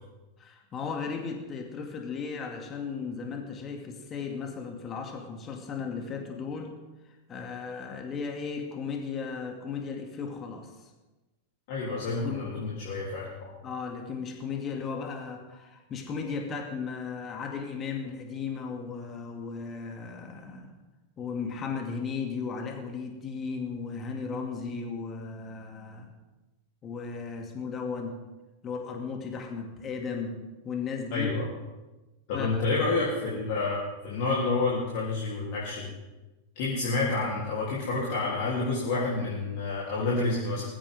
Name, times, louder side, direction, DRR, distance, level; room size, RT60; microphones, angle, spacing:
voice 1, 0.4-6.7 7.0-10.9 12.2-12.5 13.6-20.7 21.2-26.1 26.8-28.2 28.6-30.4 30.6-31.3 32.3-32.5, left 5 dB, 25° left, 2 dB, 2.7 m, -36 dB
voice 2, 11.7-13.5 31.1-31.5 32.3-35.9 36.6-40.6, left 3 dB, 50° left, -6 dB, 3.7 m, -29 dB
20.0 x 15.5 x 3.8 m, 1.1 s
figure-of-eight pair, 90°, 0 cm